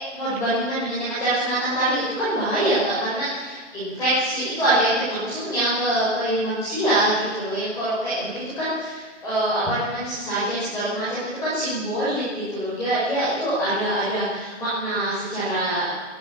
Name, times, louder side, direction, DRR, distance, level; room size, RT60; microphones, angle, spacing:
voice 1, 0.1-16.0, right 1 dB, 10° left, -10 dB, 5.9 m, -24 dB
22.5 x 13.0 x 8.8 m, 1.4 s
hypercardioid pair, 160°, 37 cm